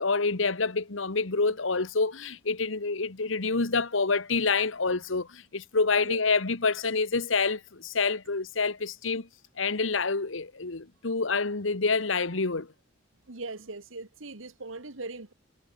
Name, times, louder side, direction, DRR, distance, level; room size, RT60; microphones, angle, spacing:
voice 1, 0.0-9.3 9.6-12.7, left 4 dB, 75° left, 1.4 m, -27 dB
voice 2, 13.3-15.3, right 3 dB, 85° right, 1.9 m, -40 dB
head